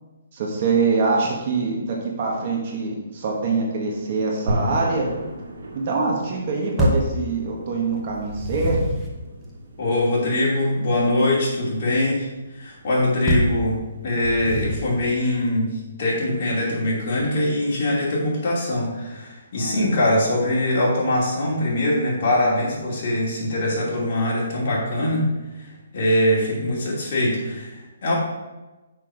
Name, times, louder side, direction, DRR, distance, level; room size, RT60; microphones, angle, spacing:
voice 1, 0.3-5.1 5.7-8.8 19.5-19.8, right 4 dB, 40° right, -1 dB, 1.5 m, -24 dB
sound 1, 4.5-14.7, equal, 85° right, 1.7 m, -36 dB
sound 2, 6.8-7.2 8.1-9.1 13.3-13.6 14.2-15.0, equal, 5° left, 1.0 m, -24 dB
voice 2, 9.8-25.3 25.6-28.1, left 1 dB, 40° left, -5 dB, 2.7 m, -22 dB
6.2 x 6.0 x 4.9 m, 1.1 s
hypercardioid pair, 165°, 0 cm